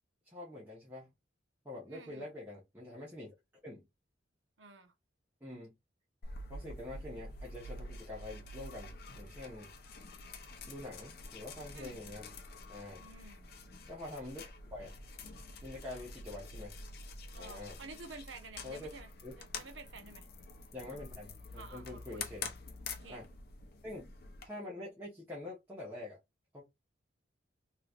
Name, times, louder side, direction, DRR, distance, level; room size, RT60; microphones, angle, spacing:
voice 1, 0.2-1.1 1.6-3.3 3.6-3.8 5.4-5.7 6.5-9.7 10.7-12.3 12.7-13.0 13.9-15.0 15.6-16.8 17.3-17.8 18.6-18.9 19.2-19.3 20.7-22.5 23.1-23.2 23.8-24.1 24.4-26.2 26.5-26.6, left 2 dB, 10° right, 1.0 m, -46 dB
voice 2, 1.9-2.3 4.6-4.9 11.7-12.0 13.0-13.5 17.3-19.1 19.4-20.3 21.5-22.3 22.9-23.2, right 3 dB, 75° right, 0.8 m, -51 dB
sound 1, 6.2-24.5, left 3 dB, 55° left, 0.7 m, -47 dB
3.1 x 3.0 x 2.4 m
head